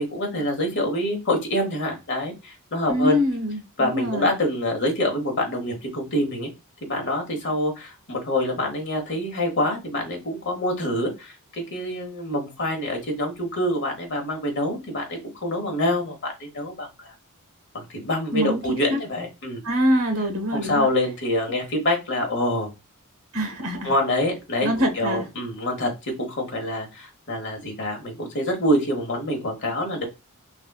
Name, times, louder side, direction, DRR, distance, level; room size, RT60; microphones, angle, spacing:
voice 1, 0.0-3.2 3.8-6.5 6.8-17.1 17.7-19.6 20.5-22.7 23.8-30.1, left 1 dB, 55° left, 2 dB, 1.1 m, -26 dB
voice 2, 2.9-4.3 18.3-19.0 19.6-20.9 23.3-23.9 24.6-25.2, equal, 65° right, 4 dB, 1.2 m, -24 dB
3.5 x 2.4 x 2.2 m, 0.25 s
head